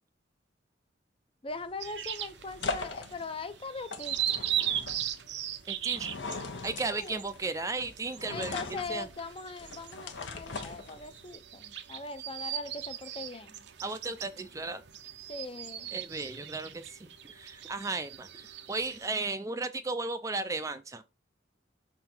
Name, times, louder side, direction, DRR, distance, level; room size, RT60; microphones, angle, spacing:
voice 1, 1.4-4.2 6.9-7.2 8.3-13.6 15.3-15.9, left 3 dB, 30° left, 0.6 m, -40 dB
sound 1, 1.5-11.3, left 4 dB, 80° left, 1.0 m, -41 dB
sound 2, 1.8-19.1, right 11 dB, 65° right, 0.7 m, -39 dB
voice 2, 5.7-6.1 6.6-8.6 8.9-9.1 13.8-14.8 15.9-21.0, right 3 dB, 15° right, 0.4 m, -35 dB
6.1 x 3.8 x 4.3 m
head